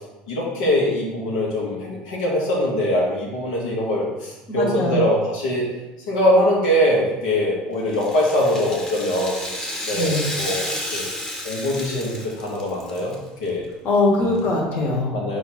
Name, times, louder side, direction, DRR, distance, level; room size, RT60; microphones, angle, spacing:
voice 1, 0.3-5.7 6.1-9.4 9.8-11.1 11.4-13.1 13.4-13.7 14.3-14.4 15.1-15.4, left 1 dB, 90° left, -4 dB, 1.0 m, -22 dB
voice 2, 4.5-5.0 9.9-10.2 13.8-15.1, left 2 dB, 50° left, -2 dB, 1.2 m, -21 dB
Rattle (instrument), 7.9-13.1 13.5-13.6 14.4-14.5, left 1 dB, 15° left, 1.0 m, -31 dB
4.1 x 2.5 x 4.1 m, 1.0 s
supercardioid pair, 95°, 4 cm